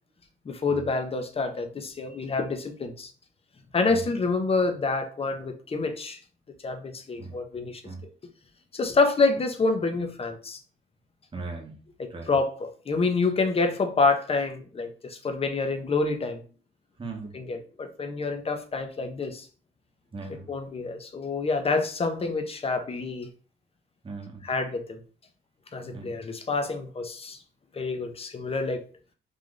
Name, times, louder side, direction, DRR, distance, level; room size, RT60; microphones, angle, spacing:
voice 1, 0.5-3.1 3.7-6.2 6.6-7.8 8.7-10.6 12.0-16.4 17.3-19.5 20.5-23.3 24.4-25.0 25.7-27.4 27.7-28.8, left 3 dB, 30° left, 7 dB, 0.7 m, -27 dB
voice 2, 7.2-8.0 11.3-11.8 12.1-12.3 17.0-17.3 20.1-20.5 24.0-24.5 25.9-26.1, right 3 dB, 25° right, 3 dB, 1.0 m, -39 dB
3.3 x 2.5 x 3.8 m, 0.40 s
cardioid pair, 90°, 20 cm